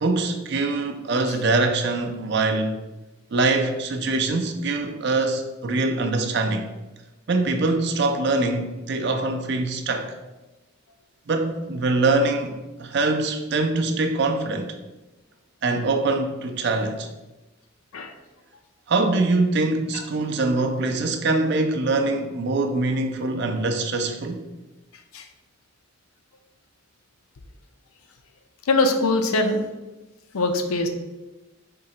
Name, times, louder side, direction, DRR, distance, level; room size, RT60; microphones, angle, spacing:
voice 1, 0.0-2.8 3.3-6.7 7.3-10.1 11.3-12.5 12.8-14.7 15.6-17.1 18.9-24.4, right 3 dB, 50° right, 0.4 m, -23 dB
voice 2, 28.7-29.6 30.3-30.9, left 2 dB, 85° left, 0.5 m, -22 dB
3.8 x 2.8 x 4.2 m
head